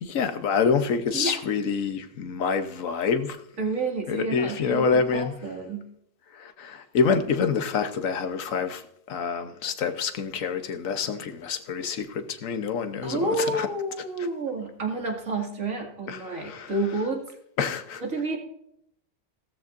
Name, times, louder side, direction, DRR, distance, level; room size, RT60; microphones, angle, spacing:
voice 1, 0.0-3.4 4.1-5.3 6.3-8.8 9.1-13.7 14.2-14.3 16.1-16.7 17.6-18.0, left 5 dB, 90° left, 1.3 m, -27 dB
voice 2, 3.6-5.9 13.0-17.2 18.0-18.4, right 2 dB, 90° right, 2.6 m, -29 dB
16.0 x 13.5 x 2.6 m
omnidirectional pair, 1.3 m